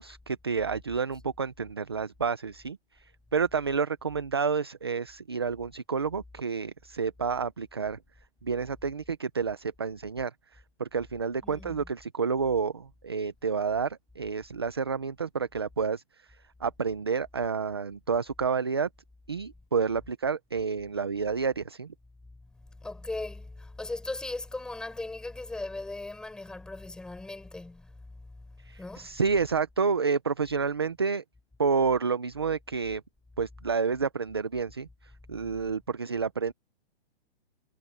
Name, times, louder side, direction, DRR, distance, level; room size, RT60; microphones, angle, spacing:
voice 1, 0.0-8.0 8.4-16.0 16.6-18.9 19.3-21.9 28.7-31.2 31.6-33.0 33.4-36.5, right 5 dB, 25° right, 0.4 m, -29 dB
voice 2, 11.4-11.9 22.5-29.2, left 2 dB, ahead, 4.2 m, -39 dB
hypercardioid pair, 175°, 32 cm